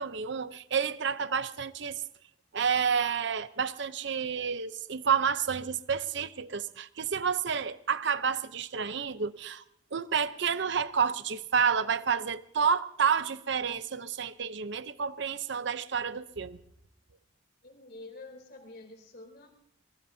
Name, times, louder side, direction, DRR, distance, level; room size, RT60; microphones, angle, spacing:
voice 1, 0.0-2.0 2.5-9.6 9.9-16.6, right 6 dB, 65° right, 0.7 m, -30 dB
voice 2, 17.6-19.5, left 2 dB, 55° left, 3.4 m, -48 dB
23.5 x 21.5 x 2.8 m
head